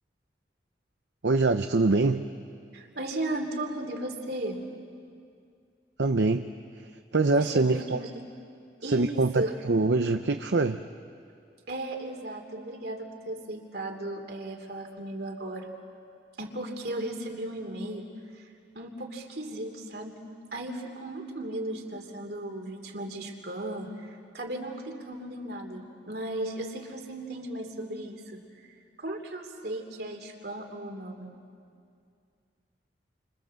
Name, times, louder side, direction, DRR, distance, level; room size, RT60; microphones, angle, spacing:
voice 1, 1.2-2.3 6.0-6.4 6.9-8.0 8.8-10.8, right 3 dB, 80° right, 7 dB, 0.7 m, -24 dB
voice 2, 2.7-4.6 7.3-8.1 8.8-9.5 11.7-15.7 16.4-18.1 18.4-18.5 18.7-20.2 20.5-24.1 24.3-28.4 29.0-31.3, right 1 dB, 65° right, 3 dB, 3.1 m, -36 dB
29.5 x 26.0 x 7.6 m, 2.3 s
head